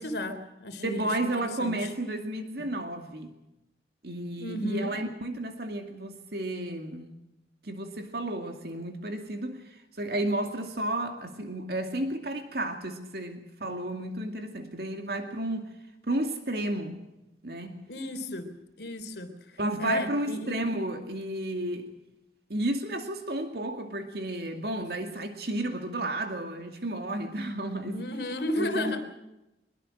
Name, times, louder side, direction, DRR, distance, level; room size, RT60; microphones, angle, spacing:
voice 1, 0.0-1.9 4.4-4.9 17.9-18.5 18.8-20.7 27.9-29.0, left 1 dB, 70° left, 3.3 m, -33 dB
voice 2, 0.8-3.3 4.0-7.1 7.6-15.7 16.1-17.0 17.4-17.8 19.6-21.9 22.5-28.0 28.6-29.0, right 1 dB, 60° right, 2.3 m, -32 dB
22.5 x 22.0 x 6.3 m
head